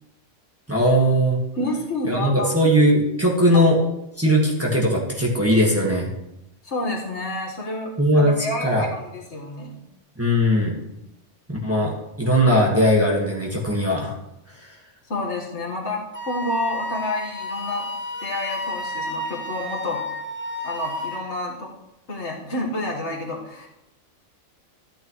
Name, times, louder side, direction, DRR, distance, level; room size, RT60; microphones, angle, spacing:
voice 1, 0.7-1.4 2.1-3.8 4.2-6.1 8.0-8.3 8.6-8.9 10.2-10.7 11.5-11.9 12.2-14.1, equal, 10° right, -3 dB, 1.5 m, -19 dB
voice 2, 1.5-2.6 3.5-3.7 6.6-9.8 15.1-17.9 18.2-20.0 20.6-21.7 22.1-23.7, left 2 dB, 65° left, -1 dB, 1.9 m, -29 dB
Wind instrument woodwind instrument, 16.1-21.3, left 1 dB, 10° left, 1.0 m, -31 dB
13.5 x 9.1 x 3.1 m, 0.88 s
omnidirectional pair, 1.3 m